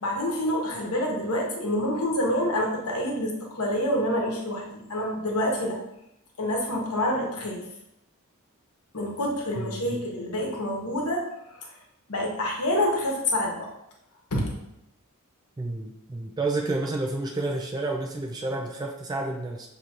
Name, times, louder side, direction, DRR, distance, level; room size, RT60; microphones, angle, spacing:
voice 1, 0.0-5.8 6.4-7.6 8.9-11.3 12.1-13.7 14.3-14.5, left 1 dB, 75° left, 0 dB, 1.1 m, -27 dB
voice 2, 9.6-10.0 15.6-19.7, right 2 dB, 20° right, 1 dB, 0.3 m, -30 dB
6.5 x 2.9 x 2.5 m, 0.83 s
head